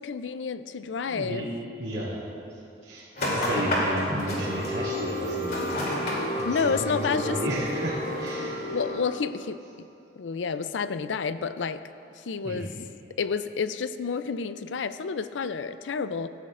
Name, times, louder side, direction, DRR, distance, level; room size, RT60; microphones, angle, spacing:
voice 1, 0.0-1.5 3.9-4.2 6.5-7.4 8.7-9.6 10.2-11.8 12.2-12.9 13.2-16.3, left 5 dB, 85° left, 12 dB, 0.5 m, -30 dB
voice 2, 1.1-1.5 1.8-2.2 2.8-3.1 3.3-5.7 6.3-8.8 12.4-12.7, right 1 dB, 75° right, -12 dB, 2.4 m, -33 dB
sound 1, 3.2-8.9, left 1 dB, 55° left, 2.9 m, -30 dB
17.5 x 14.5 x 2.5 m, 2.8 s
head